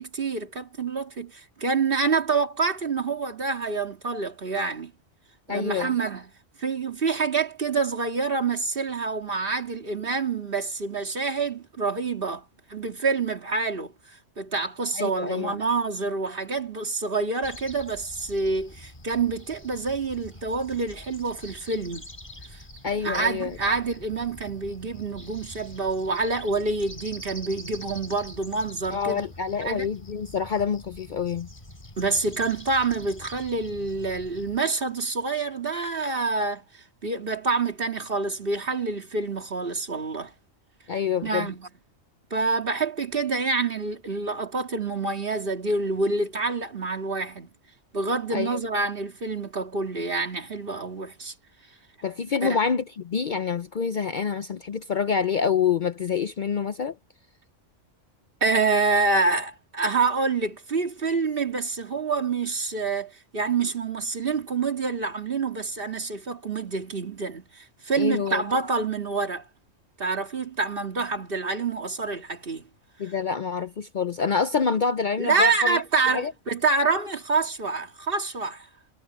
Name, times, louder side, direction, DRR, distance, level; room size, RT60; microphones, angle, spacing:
voice 1, 0.0-4.9 5.5-6.3 6.6-12.4 12.7-13.9 14.4-22.1 22.5-22.6 23.0-29.2 29.6-29.9 32.0-40.3 41.2-41.7 42.3-47.5 47.9-51.3 52.4-52.6 58.4-69.4 70.0-72.6 75.2-78.7, right 4 dB, 50° right, 2.2 m, -27 dB
voice 2, 5.5-5.9 15.0-15.6 22.8-23.6 28.9-31.5 40.9-41.5 48.3-48.6 52.0-57.0 68.0-68.4 73.0-75.8 76.1-76.3, left 6 dB, 50° left, 0.7 m, -27 dB
sound 1, 17.4-34.6, equal, 25° left, 4.7 m, -45 dB
omnidirectional pair, 1.2 m